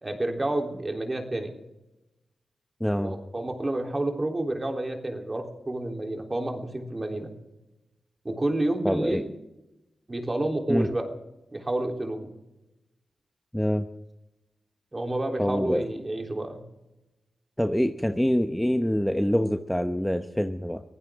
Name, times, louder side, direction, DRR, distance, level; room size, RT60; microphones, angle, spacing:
voice 1, 0.0-1.5 3.0-7.3 8.3-9.3 10.1-11.1 11.5-12.3 14.9-16.6, right 1 dB, 30° right, 2 dB, 3.5 m, -29 dB
voice 2, 2.8-3.2 8.8-9.2 10.7-10.9 13.5-13.9 15.4-15.9 17.6-20.8, equal, 5° left, 7 dB, 1.0 m, -25 dB
23.0 x 15.5 x 3.7 m, 0.96 s
cardioid pair, 50°, 0 cm